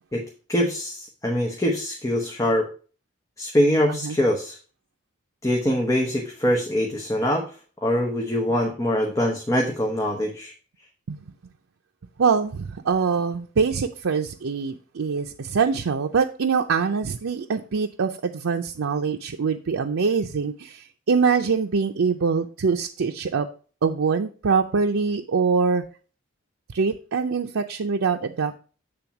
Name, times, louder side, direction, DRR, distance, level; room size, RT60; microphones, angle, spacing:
voice 1, 0.5-2.7 3.4-4.6 5.4-7.5 7.8-10.5, equal, 15° left, 0 dB, 0.9 m, -23 dB
voice 2, 12.2-23.5 23.8-25.8 26.7-28.6, right 5 dB, 85° right, 3 dB, 0.5 m, -24 dB
8.7 x 3.5 x 5.9 m, 0.39 s
head